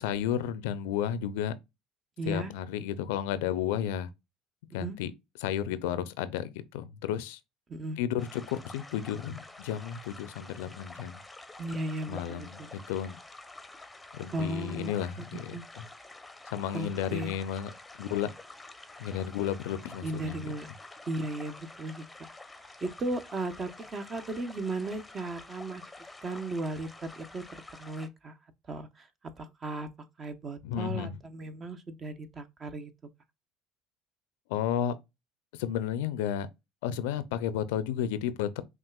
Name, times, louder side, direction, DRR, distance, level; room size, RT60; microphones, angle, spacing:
voice 1, 0.0-1.5 2.2-4.1 4.7-5.1 5.4-7.4 8.0-11.2 12.1-12.6 12.9-13.2 14.1-15.9 16.5-18.3 19.0-20.5 30.6-31.2 34.5-34.9 35.5-36.5 36.8-38.6, left 10 dB, 80° left, 0.4 m, -32 dB
voice 2, 2.2-2.5 4.8-5.0 7.7-8.0 11.6-12.5 14.3-14.9 15.3-15.6 16.7-17.3 20.0-20.7 21.1-22.0 22.8-25.8 26.2-27.4 27.8-28.3 28.7-29.1 29.4-29.9 30.2-32.9, right 2 dB, 35° right, 0.9 m, -36 dB
sound 1, 8.2-28.1, left 2 dB, 10° left, 0.7 m, -49 dB
6.0 x 2.5 x 2.3 m
supercardioid pair, 80°, 0 cm